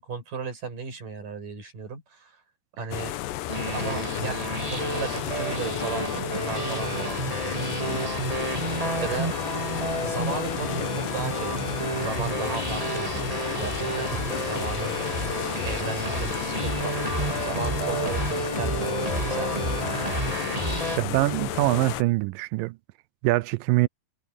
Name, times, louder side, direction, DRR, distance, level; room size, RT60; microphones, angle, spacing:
voice 1, 0.0-2.4 2.8-3.1 3.7-7.9 9.0-9.4 10.0-19.5, right 5 dB, 75° right, 7.6 m, -36 dB
sound 1, 2.9-22.0, left 15 dB, 90° left, 2.5 m, -32 dB
sound 2, 3.5-21.0, right 2 dB, 15° right, 1.6 m, -30 dB
voice 2, 21.0-22.8 23.2-23.9, right 20 dB, 90° right, 2.3 m, -23 dB
omnidirectional pair, 3.9 m